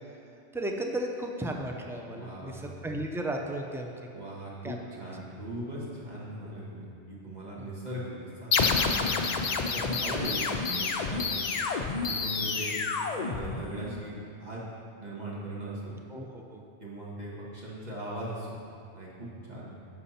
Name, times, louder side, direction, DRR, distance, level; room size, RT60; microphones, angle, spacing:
voice 1, 0.5-3.9 4.6-4.8 9.8-10.0 16.1-16.6, right 1 dB, 5° right, 2 dB, 0.4 m, -34 dB
voice 2, 2.1-2.6 4.1-9.1 9.3-11.4 12.1-14.7 15.0-15.9 16.8-18.6 18.9-19.7, right 1 dB, 40° right, -6 dB, 1.8 m, -39 dB
sound 1, 8.5-13.9, left 4 dB, 50° left, 0.5 m, -29 dB
11.0 x 6.3 x 4.3 m, 2.5 s
omnidirectional pair, 1.1 m